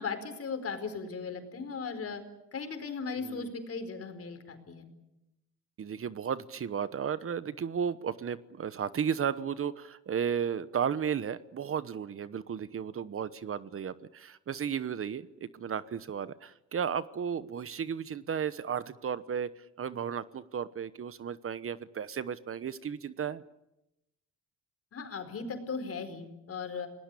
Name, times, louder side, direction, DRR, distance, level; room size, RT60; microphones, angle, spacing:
voice 1, 0.0-2.2 2.5-4.8 24.9-26.9, left 5 dB, 50° left, 8 dB, 4.7 m, -37 dB
voice 2, 5.8-23.4, right 7 dB, 45° right, 15 dB, 1.0 m, -34 dB
29.0 x 19.0 x 8.5 m, 0.90 s
cardioid pair, 90°, 30 cm